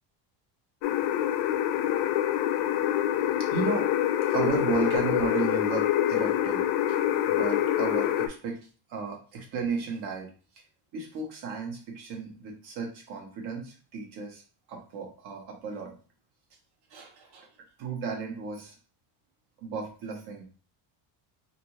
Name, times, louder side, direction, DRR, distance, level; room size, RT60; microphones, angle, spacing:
sound 1, 0.8-8.3, left 12 dB, 65° left, 0.5 m, -26 dB
voice 1, 3.5-3.8 4.3-6.7 7.3-8.6 8.9-10.3 10.9-14.4 14.7-15.9 16.9-17.5 17.8-18.7 19.6-20.4, right 5 dB, 55° right, 1 dB, 1.1 m, -33 dB
2.7 x 2.5 x 3.0 m, 0.38 s
cardioid pair, 140°, 47 cm